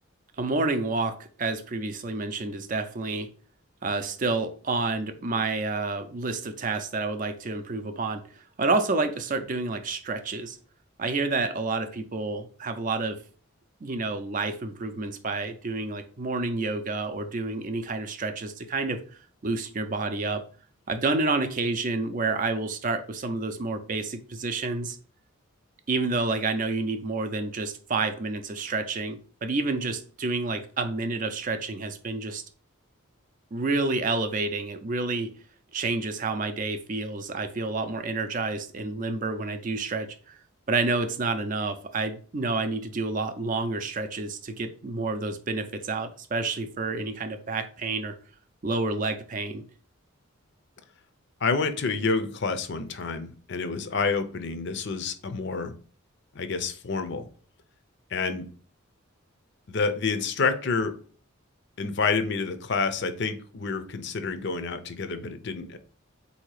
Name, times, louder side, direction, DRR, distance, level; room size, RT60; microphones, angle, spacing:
voice 1, 0.4-3.3 3.8-10.6 11.0-13.2 13.8-19.0 19.4-20.4 20.9-25.0 25.9-32.4 33.5-35.3 35.7-40.4 40.7-48.1 48.6-49.6, right 3 dB, 40° right, 8 dB, 0.4 m, -29 dB
voice 2, 51.4-55.7 56.3-57.2 58.1-58.5 59.7-60.9 61.8-65.8, left 4 dB, 55° left, 10 dB, 0.5 m, -28 dB
4.0 x 2.8 x 4.6 m, 0.42 s
head